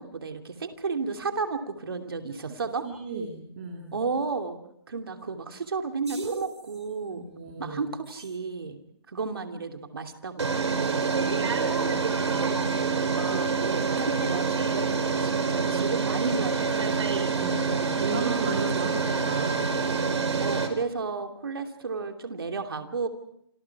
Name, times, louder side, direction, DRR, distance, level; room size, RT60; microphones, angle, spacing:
voice 1, 0.0-2.9 3.9-4.6 4.9-7.3 7.6-8.8 9.1-11.3 13.1-17.1 17.7-18.1 20.4-23.1, right 4 dB, 55° right, 4 dB, 2.8 m, -33 dB
voice 2, 2.8-4.0 7.1-7.8 11.4-12.0 12.3-12.8 17.3-19.7, right 4 dB, 25° right, 2 dB, 2.6 m, -35 dB
sound 1, 6.1-6.5 8.2-8.3 10.4-20.7, right 5 dB, 90° right, 4.7 m, -26 dB
28.0 x 27.0 x 4.8 m, 0.70 s
hypercardioid pair, 180°, 14 cm